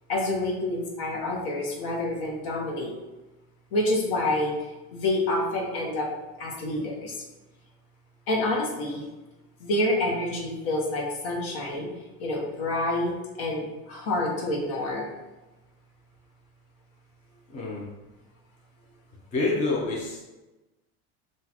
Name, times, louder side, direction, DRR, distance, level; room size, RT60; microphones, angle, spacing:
voice 1, 0.1-2.9 3.7-6.1 6.4-7.2 8.3-9.0 9.6-11.9 12.2-13.1 13.4-15.0, left 1 dB, 65° left, -1 dB, 1.1 m, -28 dB
voice 2, 17.5-17.9 19.3-20.2, left 2 dB, 25° left, -4 dB, 0.6 m, -27 dB
5.9 x 2.5 x 2.8 m, 1.1 s
cardioid pair, 180°, 30 cm